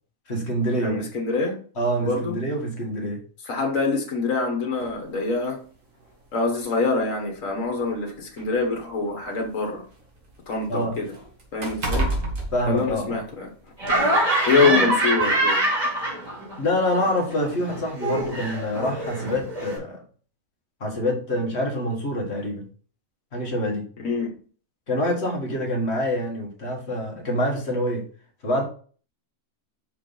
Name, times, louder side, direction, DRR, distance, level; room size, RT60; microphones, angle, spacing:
voice 1, 0.3-1.1 1.8-3.2 10.7-11.0 12.5-13.2 14.5-14.9 16.6-20.0 20.8-22.7 23.3-23.9 24.9-28.1 28.4-28.7, equal, 50° left, 1 dB, 1.8 m, -26 dB
voice 2, 0.8-1.5 2.0-2.4 3.5-5.6 6.3-9.8 10.5-11.1 11.5-12.1 12.7-13.5 14.5-15.6 24.0-24.3, left 4 dB, 70° left, 2 dB, 1.8 m, -25 dB
sound 1, 4.8-5.0 6.0-6.1 6.6-6.7 7.6-9.6 10.0-13.4 13.8-14.0, right 2 dB, 70° right, 2.0 m, -31 dB
Laughter, 13.8-16.6 16.9-19.8, right 1 dB, 25° right, 2.5 m, -24 dB
5.9 x 4.8 x 3.9 m, 0.42 s
omnidirectional pair, 1.4 m